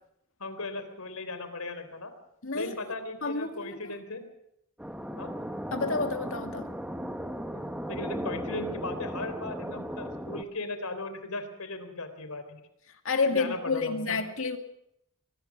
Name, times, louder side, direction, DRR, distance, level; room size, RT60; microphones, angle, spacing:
voice 1, 0.4-2.1 2.5-4.3 5.2-5.3 7.5-7.6 7.9-12.6 13.3-14.2, left 3 dB, 90° left, 9 dB, 3.7 m, -37 dB
voice 2, 2.4-2.8 3.2-3.9 5.7-6.7 13.0-14.6, left 4 dB, 65° left, 6 dB, 2.3 m, -30 dB
sound 1, 4.8-10.4, equal, 5° right, 1.0 m, -36 dB
23.0 x 19.5 x 6.1 m, 0.78 s
head